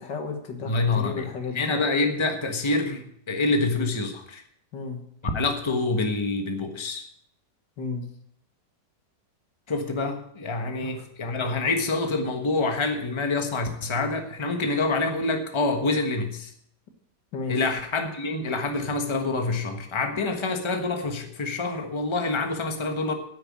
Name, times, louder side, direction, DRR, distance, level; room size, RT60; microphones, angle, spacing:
voice 1, 0.0-1.8 4.7-5.0 7.8-8.1 10.8-11.1 17.3-17.6, left 4 dB, 80° left, 4 dB, 2.3 m, -33 dB
voice 2, 0.6-4.4 5.2-7.0 9.7-16.5 17.5-23.1, left 3 dB, 20° left, 4 dB, 1.2 m, -26 dB
9.7 x 9.5 x 7.4 m, 0.70 s
omnidirectional pair, 1.9 m